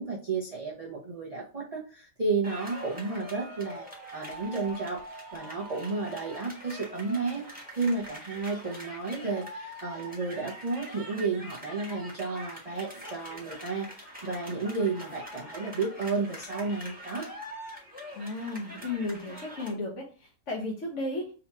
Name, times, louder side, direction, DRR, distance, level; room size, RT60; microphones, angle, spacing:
voice 1, 0.0-3.8 4.1-5.0 5.3-7.5 7.7-17.3, right 4 dB, 45° right, -4 dB, 0.4 m, -32 dB
sound 1, 2.4-19.7, equal, 5° right, 1.3 m, -44 dB
voice 2, 18.1-21.3, left 2 dB, 50° left, -3 dB, 1.1 m, -34 dB
3.9 x 2.9 x 4.5 m, 0.37 s
omnidirectional pair, 1.9 m